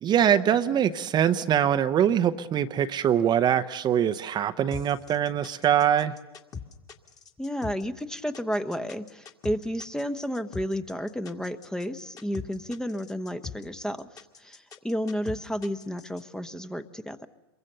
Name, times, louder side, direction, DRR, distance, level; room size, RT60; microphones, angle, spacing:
voice 1, 0.0-6.1, right 9 dB, 30° right, 9 dB, 0.9 m, -23 dB
sound 1, 4.7-16.2, left 6 dB, 25° left, 2.1 m, -41 dB
voice 2, 7.4-14.1 14.4-17.3, equal, 5° left, 10 dB, 1.0 m, -32 dB
27.0 x 23.0 x 6.8 m, 1.1 s
hypercardioid pair, 110°, 14 cm